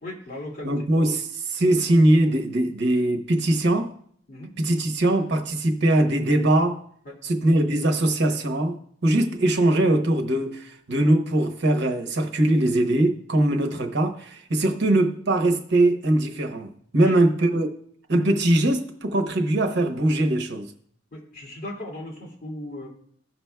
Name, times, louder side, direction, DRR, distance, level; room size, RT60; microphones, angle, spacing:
voice 1, 0.0-0.7 4.3-4.5 7.0-7.1 9.2-9.3 17.0-17.2 21.1-22.9, left 1 dB, 45° left, 2.5 m, -37 dB
voice 2, 0.6-3.9 4.6-6.8 7.2-8.8 9.0-17.7 18.1-20.7, right 1 dB, 60° right, 1.0 m, -21 dB
16.5 x 6.1 x 2.3 m
head